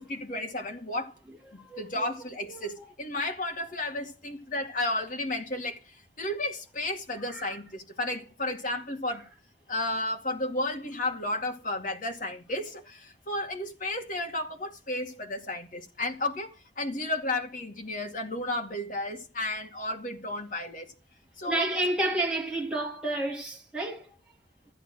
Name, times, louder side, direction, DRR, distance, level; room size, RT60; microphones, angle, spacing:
voice 1, 0.0-1.1 1.5-9.2 9.7-20.9 21.4-21.6, left 2 dB, 50° left, 2.3 m, -33 dB
voice 2, 1.3-2.1 2.4-2.9 7.3-7.6 21.5-24.1, right 1 dB, 5° right, 3.5 m, -31 dB
14.5 x 9.4 x 6.3 m
head